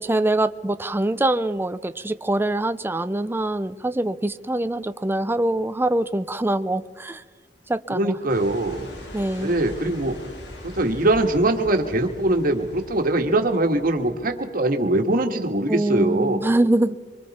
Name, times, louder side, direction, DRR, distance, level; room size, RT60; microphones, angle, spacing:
voice 1, 0.0-7.2 7.7-8.2 9.1-9.5 15.7-17.0, right 1 dB, 15° right, 12 dB, 0.5 m, -24 dB
voice 2, 7.9-8.9 9.4-10.2 10.6-16.4, right 2 dB, 55° right, 4 dB, 1.7 m, -22 dB
sound 1, 8.3-14.3, left 1 dB, 80° left, 3.4 m, -41 dB
25.5 x 24.0 x 4.3 m, 1.5 s
head